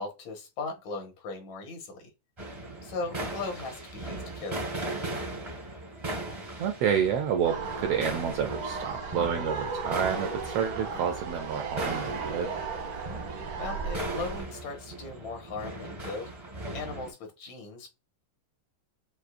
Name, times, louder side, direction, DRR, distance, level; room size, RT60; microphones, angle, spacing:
voice 1, 0.0-2.1 2.8-4.8 13.6-16.3 16.7-17.9, left 3 dB, 75° left, 2.7 m, -38 dB
sound 1, 2.4-17.1, right 1 dB, 40° right, 0.4 m, -38 dB
voice 2, 6.6-12.5, right 8 dB, 80° right, 1.4 m, -29 dB
sound 2, 7.4-14.4, right 4 dB, 60° right, 0.9 m, -35 dB
6.3 x 2.8 x 2.5 m
omnidirectional pair, 3.4 m